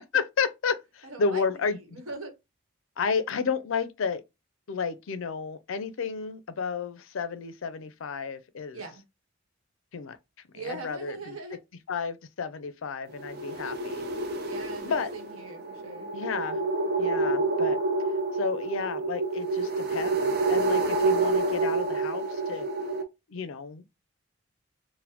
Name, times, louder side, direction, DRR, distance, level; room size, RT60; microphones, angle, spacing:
voice 1, 0.1-2.0 3.0-4.2 4.7-8.8 9.9-10.2 10.5-11.4 11.9-14.0 14.8-15.1 16.1-16.6 17.0-17.8 18.3-22.7 23.3-23.8, left 5 dB, 75° left, 0.5 m, -31 dB
voice 2, 1.0-1.4 1.7-2.3 8.7-9.0 10.5-11.6 14.4-16.1, right 3 dB, 90° right, 1.1 m, -40 dB
sound 1, 13.1-23.0, right 3 dB, 45° right, 0.5 m, -28 dB
4.0 x 2.1 x 2.8 m
head